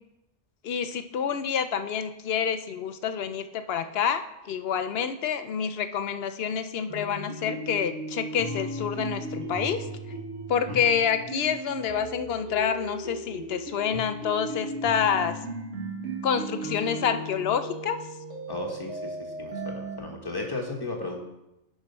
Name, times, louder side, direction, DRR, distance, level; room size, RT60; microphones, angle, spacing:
voice 1, 0.6-9.9 10.5-15.4 16.2-18.0, left 7 dB, 65° left, 10 dB, 0.8 m, -28 dB
sound 1, 6.9-20.0, right 1 dB, 85° right, 2.0 m, -36 dB
voice 2, 18.5-21.2, left 2 dB, 20° left, 1 dB, 1.3 m, -35 dB
9.7 x 4.7 x 5.4 m, 0.91 s
omnidirectional pair, 1.2 m